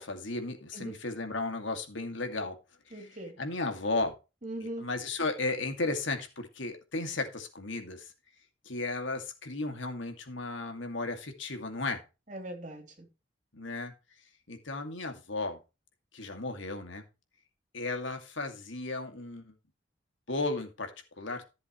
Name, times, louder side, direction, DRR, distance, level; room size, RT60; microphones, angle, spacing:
voice 1, 0.0-2.5 2.9-3.0 3.4-4.1 4.8-8.1 8.7-12.0 13.5-13.9 14.5-15.6 16.1-17.0 17.7-19.5 20.3-20.9 21.2-21.4, left 2 dB, 75° left, 2.4 m, -34 dB
voice 2, 2.9-3.4 4.4-4.9 12.3-13.1, right 1 dB, 40° right, 3.2 m, -40 dB
14.5 x 7.4 x 3.2 m
head